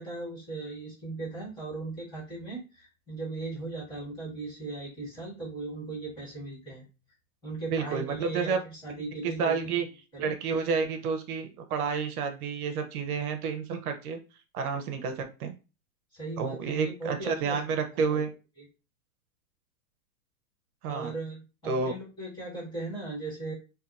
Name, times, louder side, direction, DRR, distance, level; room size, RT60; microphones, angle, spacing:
voice 1, 0.0-6.8 7.4-9.7 10.1-10.3 16.1-17.6 17.9-18.2 18.6-18.7 20.9-23.5, right 3 dB, 10° left, -8 dB, 1.3 m, -38 dB
voice 2, 7.7-8.6 9.2-9.9 10.2-14.2 14.5-15.5 16.4-18.3 20.8-21.1 21.7-21.9, right 5 dB, 75° right, 6 dB, 0.7 m, -30 dB
2.7 x 2.3 x 2.3 m, 0.30 s
supercardioid pair, 155°, 44 cm